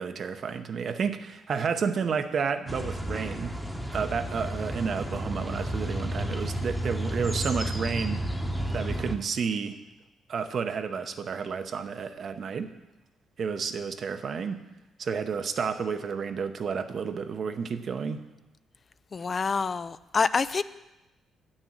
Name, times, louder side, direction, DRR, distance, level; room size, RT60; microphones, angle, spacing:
voice 1, 0.0-3.6 3.9-8.2 8.7-9.8 10.3-12.7 13.4-14.6 15.0-18.2, right 6 dB, 55° right, 9 dB, 0.8 m, -31 dB
sound 1, 2.7-9.2, equal, ahead, 1.0 m, -32 dB
voice 2, 19.1-20.6, left 5 dB, 40° left, 15 dB, 0.4 m, -27 dB
9.0 x 6.5 x 7.4 m, 1.0 s
cardioid pair, 90°, 0 cm